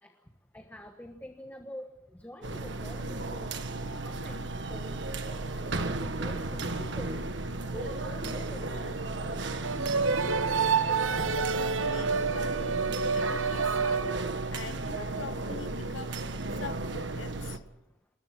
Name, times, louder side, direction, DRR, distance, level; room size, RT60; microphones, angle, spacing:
voice 1, 0.5-3.5 3.8-5.0 5.5-7.2 7.7-9.0 10.6-10.7 11.1-11.2, equal, 10° left, 1.4 m, -46 dB
sound 1, 2.4-17.6, right 2 dB, 65° right, 1.5 m, -34 dB
sound 2, 9.6-14.7, right 5 dB, 90° right, 0.9 m, -29 dB
voice 2, 11.1-12.6 13.1-14.1 14.5-16.2 16.6-17.6, left 4 dB, 75° left, 1.0 m, -43 dB
27.5 x 21.0 x 6.1 m
head